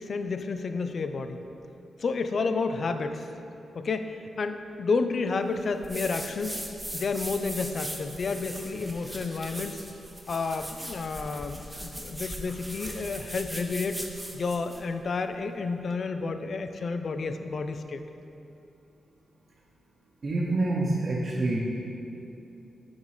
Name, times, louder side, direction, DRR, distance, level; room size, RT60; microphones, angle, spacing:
voice 1, 0.0-1.4 2.0-3.3 3.7-6.6 6.9-9.8 10.3-14.0 14.3-18.0, left 4 dB, 55° left, 8 dB, 0.4 m, -30 dB
sound 1, 5.8-14.9, equal, 5° right, 0.8 m, -39 dB
voice 2, 20.2-21.6, right 2 dB, 45° right, -5 dB, 0.8 m, -26 dB
7.1 x 4.0 x 4.9 m, 2.9 s
cardioid pair, 80°, 0 cm